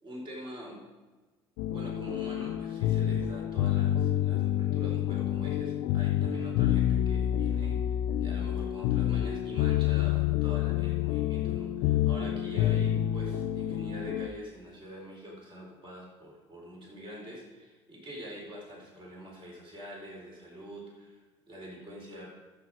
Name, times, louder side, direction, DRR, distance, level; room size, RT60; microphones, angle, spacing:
voice 1, 0.0-0.8 1.6-22.3, equal, 40° right, -3 dB, 4.3 m, -45 dB
sound 1, 1.6-14.3, left 11 dB, 75° left, 0.6 m, -28 dB
11.5 x 8.5 x 4.9 m, 1.3 s
supercardioid pair, 75°, 14 cm